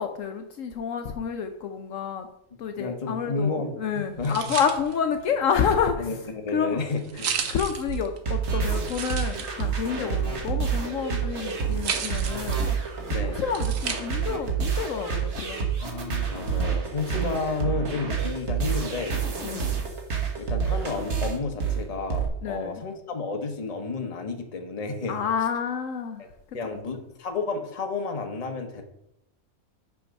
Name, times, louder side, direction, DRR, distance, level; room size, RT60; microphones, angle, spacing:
voice 1, 0.0-2.3 2.6-6.3 6.5-6.8 7.1-12.7 13.1-15.7 19.4-19.7 22.4-22.8 25.1-26.2 26.6-26.8, left 7 dB, 70° left, 6 dB, 1.0 m, -29 dB
voice 2, 2.8-4.4 6.0-7.4 10.0-10.2 13.1-13.4 15.8-19.2 20.4-25.2 26.2-26.3 26.5-28.8, left 3 dB, 30° left, 5 dB, 1.0 m, -31 dB
sound 1, 4.0-14.4, right 7 dB, 70° right, 1.2 m, -36 dB
sound 2, 7.9-22.3, right 6 dB, 55° right, 1.5 m, -28 dB
6.0 x 5.9 x 5.1 m, 0.84 s
omnidirectional pair, 1.5 m